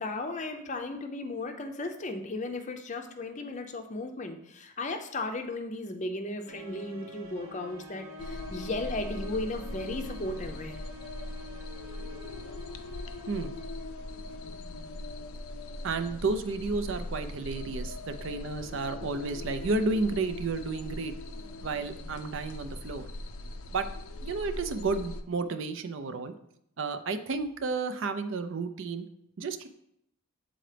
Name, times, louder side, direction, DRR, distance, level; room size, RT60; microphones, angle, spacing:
voice 1, 0.0-10.8, left 2 dB, 35° left, 6 dB, 0.5 m, -35 dB
sound 1, 6.5-14.8, left 1 dB, 85° right, 0.8 m, -48 dB
sound 2, 8.2-25.2, left 2 dB, 80° left, 0.5 m, -40 dB
voice 2, 15.8-21.1 21.6-23.1 23.7-23.9 24.2-26.3 26.8-29.1 29.4-29.7, right 3 dB, 65° right, 10 dB, 0.4 m, -32 dB
7.6 x 3.9 x 3.3 m, 0.75 s
head